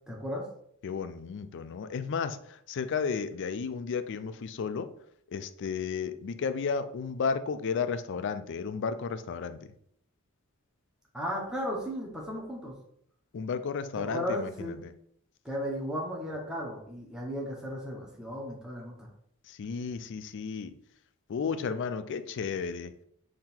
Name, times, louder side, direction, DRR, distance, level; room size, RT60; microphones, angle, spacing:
voice 1, 0.1-0.4 11.1-12.7 13.9-14.8 15.4-19.1, equal, 5° right, -3 dB, 1.0 m, -35 dB
voice 2, 0.8-2.4 2.7-4.9 5.3-9.6 13.3-14.7 19.6-20.7 21.3-22.9, left 5 dB, 55° left, 11 dB, 0.4 m, -33 dB
3.8 x 2.8 x 4.3 m, 0.67 s
head